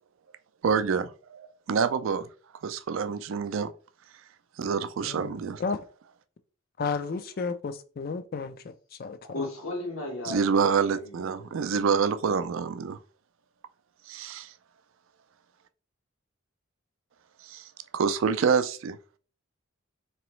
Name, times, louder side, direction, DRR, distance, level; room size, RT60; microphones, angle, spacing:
voice 1, 0.6-2.3 2.6-3.7 4.6-5.6 10.2-13.0 14.1-14.5 17.4-17.7 17.9-19.0, right 6 dB, 70° right, 0.4 m, -27 dB
voice 2, 5.0-5.8 6.8-8.7 9.0-9.5, left 4 dB, 45° left, 0.3 m, -33 dB
voice 3, 9.2-11.7, left 2 dB, 85° left, 1.5 m, -36 dB
3.8 x 3.0 x 3.1 m
head